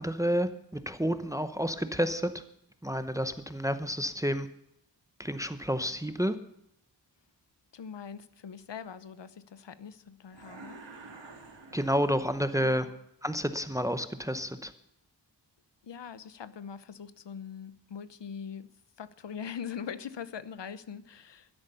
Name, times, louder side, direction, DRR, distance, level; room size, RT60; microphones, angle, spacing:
voice 1, 0.0-2.3 2.8-4.5 5.2-6.4 11.7-12.9 13.2-14.7, equal, 5° right, 10 dB, 0.8 m, -30 dB
voice 2, 7.7-10.8 12.6-13.0 15.8-18.7 19.0-21.5, left 7 dB, 75° left, 15 dB, 0.9 m, -42 dB
sound 1, 10.3-12.6, right 3 dB, 80° right, 2.5 m, -49 dB
12.5 x 11.0 x 6.9 m, 0.78 s
wide cardioid pair, 105°, 44 cm